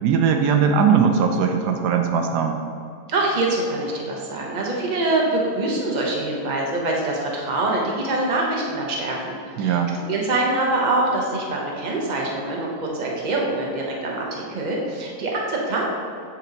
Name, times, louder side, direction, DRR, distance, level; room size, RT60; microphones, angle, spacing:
voice 1, 0.0-2.6 9.6-9.9, right 6 dB, 80° right, 4 dB, 1.2 m, -19 dB
voice 2, 3.1-15.8, right 2 dB, 30° right, -2 dB, 0.9 m, -24 dB
8.2 x 4.4 x 3.9 m, 2.5 s
omnidirectional pair, 1.7 m